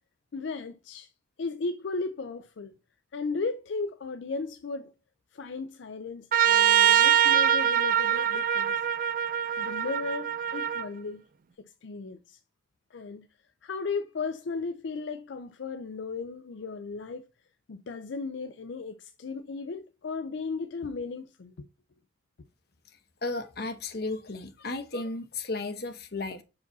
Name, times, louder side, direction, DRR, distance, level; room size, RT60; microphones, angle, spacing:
voice 1, 0.3-1.1 1.4-2.8 3.1-4.9 5.3-8.8 9.6-11.2 11.6-12.4 12.9-13.3 13.6-17.3 17.7-21.7, left 4 dB, 70° left, 0.4 m, -35 dB
Trumpet, 6.3-10.9, right 9 dB, 45° right, 0.4 m, -23 dB
voice 2, 23.2-26.4, left 2 dB, 55° left, 0.9 m, -34 dB
6.1 x 4.8 x 3.9 m
head